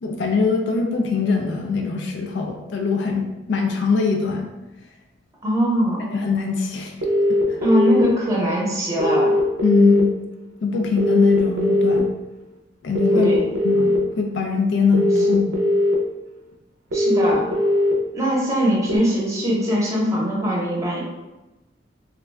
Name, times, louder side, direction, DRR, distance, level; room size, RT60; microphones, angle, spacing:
voice 1, 0.0-4.5 6.1-6.9 7.5-7.6 9.6-10.1 10.6-12.1 12.8-13.3 13.6-15.6, left 4 dB, 70° left, 2 dB, 0.4 m, -22 dB
voice 2, 5.4-6.1 7.6-9.3 13.1-13.5 16.9-17.5 18.1-21.0, equal, 15° right, -4 dB, 0.7 m, -21 dB
sound 1, 7.0-8.0 9.0-10.0 11.0-12.0 13.0-14.0 14.9-15.9 16.9-17.9 18.9-19.0, left 1 dB, 65° right, 0.5 m, -19 dB
2.5 x 2.2 x 3.2 m, 1.0 s
head